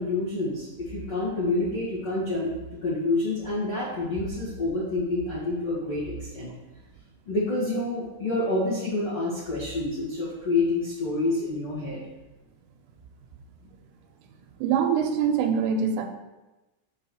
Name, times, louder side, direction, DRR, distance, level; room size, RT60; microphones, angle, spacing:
voice 1, 0.0-2.5 2.8-6.5 7.2-12.0, left 2 dB, 65° left, -10 dB, 1.3 m, -28 dB
voice 2, 14.6-16.1, right 7 dB, 85° right, 4 dB, 3.2 m, -24 dB
7.9 x 3.0 x 6.3 m, 1.0 s
omnidirectional pair, 5.8 m